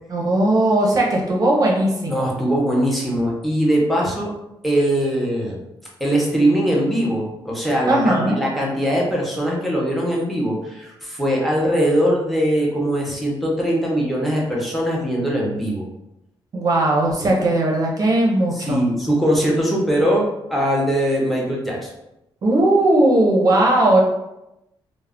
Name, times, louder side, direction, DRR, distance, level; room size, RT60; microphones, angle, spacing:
voice 1, 0.1-2.3 7.9-8.4 16.5-18.8 22.4-24.0, right 1 dB, 45° right, -2 dB, 0.5 m, -18 dB
voice 2, 2.1-4.3 4.6-5.6 6.0-15.8 17.2-17.3 18.5-21.9, equal, ahead, -3 dB, 0.6 m, -21 dB
2.3 x 2.0 x 3.5 m, 0.89 s
cardioid pair, 130°, 9 cm